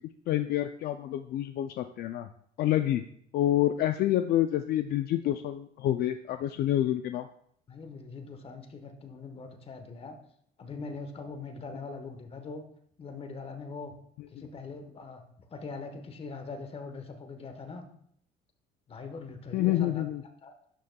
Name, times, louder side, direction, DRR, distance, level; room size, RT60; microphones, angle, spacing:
voice 1, 0.3-2.3 2.6-3.0 3.3-7.3 19.5-20.2, left 13 dB, 65° left, 8 dB, 0.4 m, -28 dB
voice 2, 7.7-10.2 10.6-12.7 13.0-14.0 14.3-17.9 18.9-20.0 20.4-20.5, left 4 dB, 35° left, 7 dB, 1.1 m, -42 dB
11.0 x 6.7 x 2.3 m, 0.66 s
cardioid pair, 110°, 17 cm